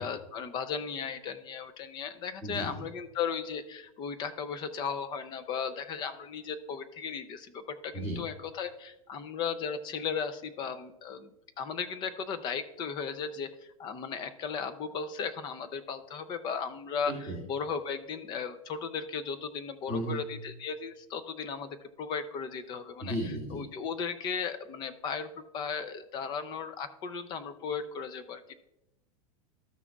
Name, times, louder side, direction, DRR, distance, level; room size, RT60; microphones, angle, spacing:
voice 1, 0.0-23.1 23.5-28.5, left 6 dB, 25° left, 11 dB, 0.5 m, -36 dB
voice 2, 2.4-2.9 7.9-8.2 17.1-17.4 19.9-20.2 23.0-23.6, right 1 dB, 10° left, -9 dB, 2.3 m, -34 dB
13.5 x 6.1 x 2.3 m, 0.89 s
supercardioid pair, 160°, 18 cm